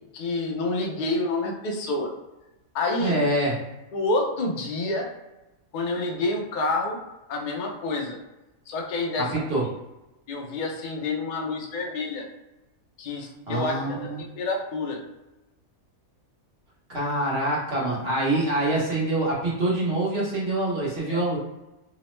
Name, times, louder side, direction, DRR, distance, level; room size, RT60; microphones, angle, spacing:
voice 1, 0.1-2.1 2.7-3.2 3.9-5.1 5.7-7.0 7.3-8.2 8.7-9.3 10.3-12.2 13.0-13.7 14.0-15.0 17.8-17.9 21.1-21.3, left 2 dB, 70° left, 0 dB, 0.4 m, -28 dB
voice 2, 3.0-3.6 9.2-9.6 13.5-14.2 16.9-21.4, right 1 dB, 50° right, -5 dB, 1.1 m, -25 dB
2.9 x 2.0 x 3.0 m, 0.98 s
omnidirectional pair, 1.5 m